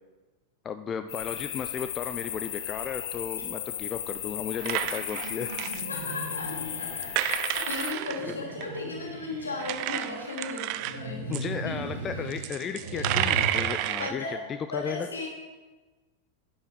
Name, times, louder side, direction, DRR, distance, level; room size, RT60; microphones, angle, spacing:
voice 1, 0.6-5.5 11.3-14.2 14.5-15.1, left 7 dB, 25° left, 9 dB, 0.4 m, -34 dB
sound 1, 1.1-7.9, left 11 dB, 55° left, 0.7 m, -35 dB
sound 2, 4.6-5.8 7.0-8.8 9.6-11.0 11.3-11.5 12.3-14.1, right 14 dB, 45° right, 0.4 m, -30 dB
sound 3, 4.8-7.1 8.0-10.0 10.7-13.6, right 2 dB, 65° right, 2.0 m, -37 dB
voice 2, 5.8-11.4 11.6-11.7 14.0-14.4 14.7-15.3, left 3 dB, 75° left, -1 dB, 2.7 m, -36 dB
11.0 x 9.7 x 3.6 m, 1.3 s
figure-of-eight pair, 90°, 0 cm